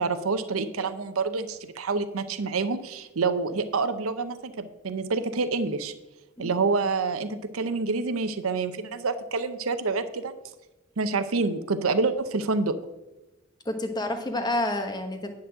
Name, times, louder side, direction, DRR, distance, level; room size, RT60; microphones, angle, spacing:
voice 1, 0.0-5.9 6.4-10.3 11.0-12.7, right 4 dB, 90° right, 10 dB, 0.7 m, -27 dB
voice 2, 13.6-15.3, left 1 dB, 20° left, 5 dB, 1.2 m, -29 dB
10.0 x 4.2 x 7.5 m, 1.0 s
head